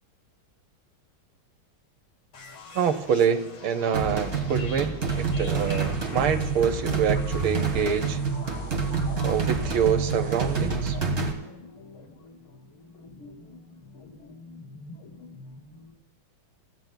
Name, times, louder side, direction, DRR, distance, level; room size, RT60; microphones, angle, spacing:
sound 1, 2.3-15.9, left 4 dB, 75° left, 2.7 m, -45 dB
voice 1, 2.7-8.2 9.2-11.0, right 7 dB, 75° right, 8 dB, 1.6 m, -26 dB
sound 2, 3.9-11.3, right 5 dB, 40° right, 1.7 m, -27 dB
sound 3, 5.1-10.7, left 3 dB, 10° right, 3.3 m, -41 dB
28.5 x 15.0 x 2.2 m, 0.99 s
omnidirectional pair, 2.3 m